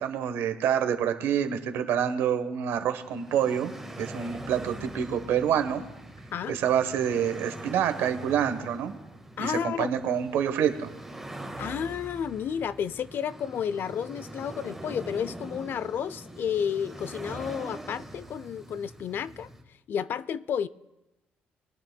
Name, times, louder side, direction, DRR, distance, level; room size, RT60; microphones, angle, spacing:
voice 1, 0.0-3.7 4.0-5.8 6.5-8.9 9.4-10.9, right 9 dB, 80° right, 1.2 m, -27 dB
sound 1, 2.8-19.6, right 1 dB, 5° right, 1.6 m, -43 dB
voice 2, 9.4-9.9 11.6-19.5 19.9-20.7, left 8 dB, 60° left, 0.4 m, -31 dB
23.0 x 10.5 x 2.3 m
cardioid pair, 90°, 4 cm